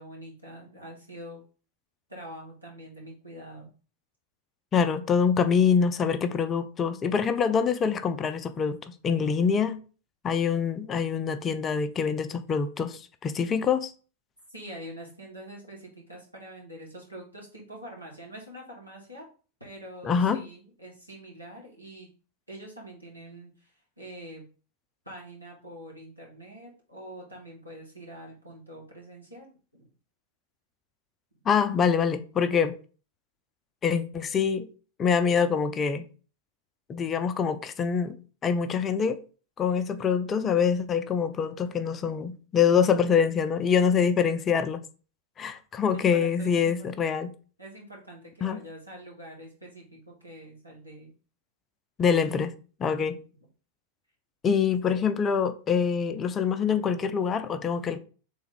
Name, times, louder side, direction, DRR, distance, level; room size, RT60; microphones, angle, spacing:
voice 1, 0.0-1.4 2.1-3.7 14.5-19.2 19.6-22.1 22.5-24.4 25.0-29.9 46.1-46.7 47.0-47.1 47.6-51.1 53.0-53.2, right 1 dB, 90° right, 1.5 m, -45 dB
voice 2, 4.7-9.8 10.2-13.9 20.0-20.4 31.5-32.8 33.8-34.7 35.0-36.1 36.9-38.2 38.4-39.2 39.6-44.8 45.4-47.3 48.4-48.6 52.0-52.5 52.8-53.2 54.4-58.0, left 6 dB, 25° left, 0.4 m, -25 dB
3.5 x 3.5 x 3.5 m
figure-of-eight pair, 90°, 0 cm